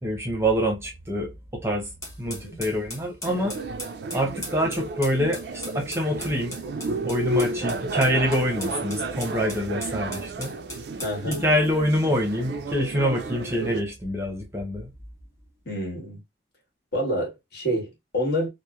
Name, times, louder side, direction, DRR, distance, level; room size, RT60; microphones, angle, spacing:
voice 1, 0.0-1.9 2.2-3.6 4.1-6.6 7.0-10.5 11.3-14.9, equal, 15° right, 0.7 m, -26 dB
sound 1, 2.0-11.5, left 1 dB, 15° left, 0.9 m, -39 dB
voice 2, 2.3-2.6 11.0-11.4 15.6-16.2 16.9-18.5, equal, 60° left, 1.4 m, -28 dB
sound 2, 3.2-13.8, right 2 dB, 65° right, 0.3 m, -32 dB
2.9 x 2.0 x 2.3 m
head